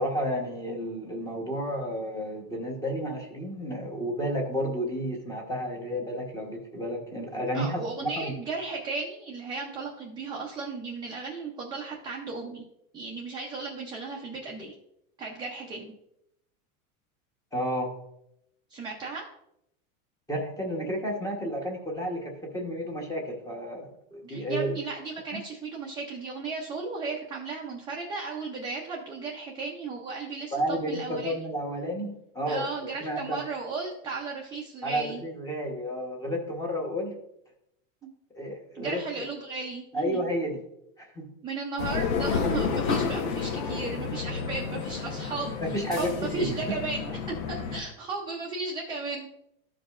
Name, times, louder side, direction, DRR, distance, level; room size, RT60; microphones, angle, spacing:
voice 1, 0.0-8.3 17.5-17.9 20.3-24.8 30.5-33.4 34.8-37.1 38.3-39.0 39.9-40.6 41.0-41.3 44.3-44.4 45.6-46.6, equal, 10° left, 1 dB, 1.0 m, -31 dB
voice 2, 7.5-12.6 12.9-14.7 15.2-15.9 18.7-19.2 24.3-31.3 32.5-35.2 38.0-38.1 38.7-40.2 41.4-49.3, right 4 dB, 10° right, -3 dB, 0.5 m, -35 dB
sound 1, 41.8-47.8, left 6 dB, 75° left, 1.1 m, -30 dB
13.5 x 5.0 x 2.4 m, 0.79 s
supercardioid pair, 160°, 42 cm